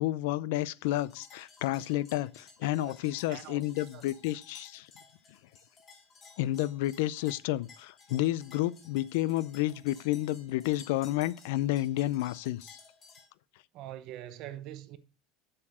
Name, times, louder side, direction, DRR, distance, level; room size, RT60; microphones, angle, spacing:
voice 1, 0.0-4.9 6.4-12.8, left 15 dB, 80° left, 0.5 m, -30 dB
sound 1, 0.8-13.3, left 5 dB, 25° left, 2.1 m, -56 dB
voice 2, 2.6-3.6 3.9-4.0 13.7-15.0, right 12 dB, 50° right, 0.8 m, -44 dB
7.3 x 6.8 x 6.2 m
cardioid pair, 165°, 0 cm